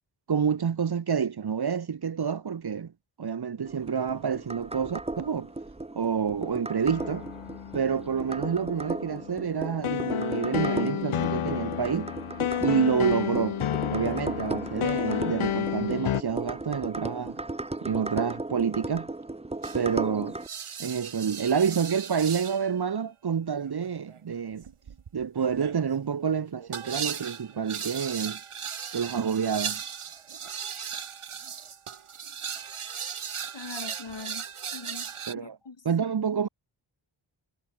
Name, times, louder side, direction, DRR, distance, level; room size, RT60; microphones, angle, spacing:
voice 1, 0.3-2.9 3.2-5.5 5.9-7.3 7.7-12.1 12.6-13.6 13.9-17.4 17.8-19.1 19.7-20.4 20.8-24.7 25.1-28.4 28.9-29.8 35.3-35.6 35.8-36.5, right 7 dB, 50° right, 1.0 m, -28 dB
sound 1, 3.6-20.5, right 2 dB, 15° right, 0.8 m, -36 dB
sound 2, 6.8-16.2, left 10 dB, 80° left, 0.8 m, -31 dB
sound 3, 19.6-19.9 20.4-22.7 23.6-35.3, right 7 dB, 85° right, 2.1 m, -37 dB
voice 2, 33.5-34.4 34.7-35.8, left 4 dB, 60° left, 6.8 m, -42 dB
wide cardioid pair, 60°, 49 cm